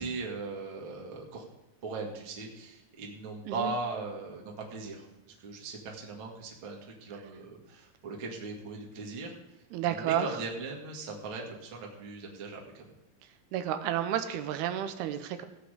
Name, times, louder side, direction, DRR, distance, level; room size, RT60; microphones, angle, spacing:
voice 1, 0.0-1.4 1.8-5.1 5.4-9.3 9.8-12.9, right 3 dB, 40° right, -1 dB, 2.0 m, -39 dB
voice 2, 9.7-10.3 13.5-15.4, right 10 dB, 80° right, 9 dB, 2.6 m, -31 dB
16.0 x 8.3 x 5.0 m, 0.95 s
omnidirectional pair, 4.8 m